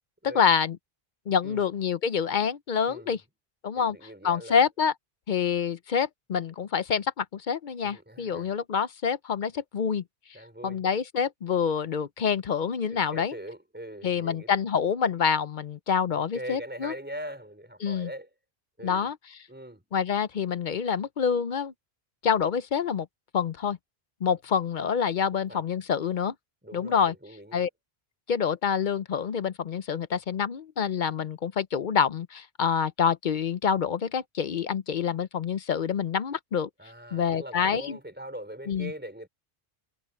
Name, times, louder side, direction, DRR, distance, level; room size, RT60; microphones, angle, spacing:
voice 1, 0.2-0.8 1.3-3.2 3.6-4.0 4.2-4.9 5.3-10.0 10.6-13.4 14.0-16.9 17.8-18.1 18.8-19.2 19.9-21.7 22.2-23.1 23.3-23.8 24.2-26.3 26.7-27.1 27.5-27.7 28.3-36.7 37.1-38.0 38.7-38.9, left 7 dB, 55° left, 0.7 m, -27 dB
voice 2, 3.7-4.6 7.8-8.5 10.3-10.8 12.9-14.5 16.1-18.3 18.8-19.1 19.5-19.8 25.5-25.6 26.6-27.6 36.8-39.3, right 1 dB, 10° right, 4.3 m, -41 dB
omnidirectional pair, 1.0 m